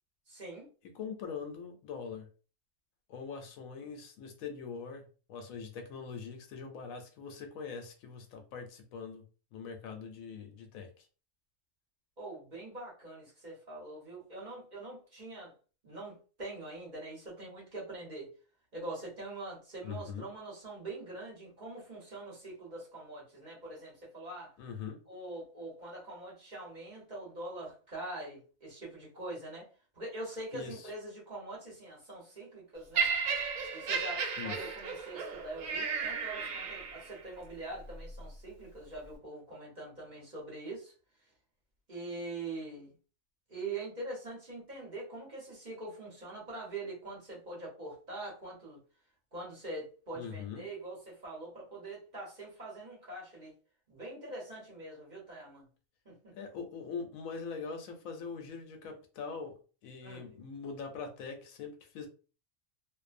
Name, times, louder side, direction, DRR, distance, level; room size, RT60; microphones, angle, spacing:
voice 1, 0.3-0.7 12.2-15.5 15.8-18.3 18.7-24.5 25.1-29.7 29.9-33.1 33.7-40.9 41.9-42.9 43.5-48.8 49.3-53.5 53.9-55.7 56.0-56.3 60.0-60.3, right 2 dB, 35° right, -4 dB, 1.0 m, -43 dB
voice 2, 0.9-2.3 3.1-9.2 9.5-11.1 19.8-20.3 24.6-25.0 30.5-30.9 34.4-34.6 50.1-50.6 56.4-62.1, left 5 dB, 85° left, 5 dB, 1.1 m, -42 dB
Laughter, 32.9-37.2 38.0-38.2, right 5 dB, 80° right, 1.1 m, -34 dB
2.6 x 2.1 x 2.5 m, 0.36 s
omnidirectional pair, 1.4 m